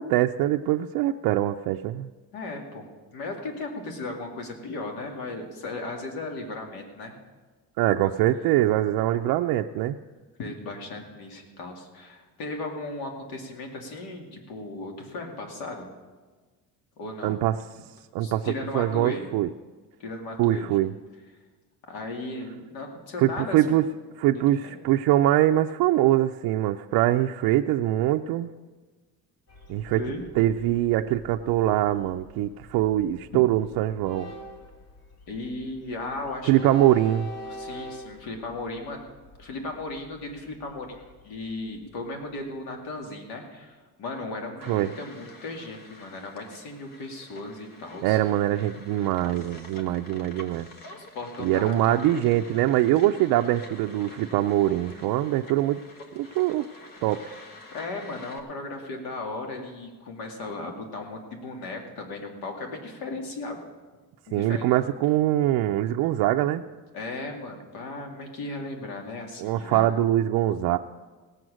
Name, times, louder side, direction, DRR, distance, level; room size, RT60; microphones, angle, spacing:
voice 1, 0.0-2.1 7.8-10.0 17.2-17.5 18.1-19.5 20.4-20.9 23.2-23.8 24.2-28.5 29.7-30.0 30.4-34.3 36.4-37.2 44.7-44.9 48.0-50.7 51.4-55.8 56.1-56.7 57.0-57.3 64.3-66.6 69.4-70.8, right 13 dB, 85° right, 4 dB, 0.5 m, -23 dB
voice 2, 2.3-2.9 3.1-7.1 8.0-8.1 10.4-15.9 17.0-17.4 18.2-19.3 20.0-20.7 21.9-23.8 24.3-24.8 30.0-30.2 35.3-36.9 37.4-39.0 39.4-48.2 50.9-52.3 57.7-63.6 64.3-64.7 66.9-69.9, left 2 dB, 80° left, 2 dB, 2.4 m, -36 dB
Train, 29.5-42.5, equal, 45° left, 2.5 m, -45 dB
sound 1, 44.6-58.4, left 2 dB, 65° left, 1.6 m, -47 dB
17.5 x 7.8 x 6.2 m, 1.3 s
cardioid pair, 160°, 36 cm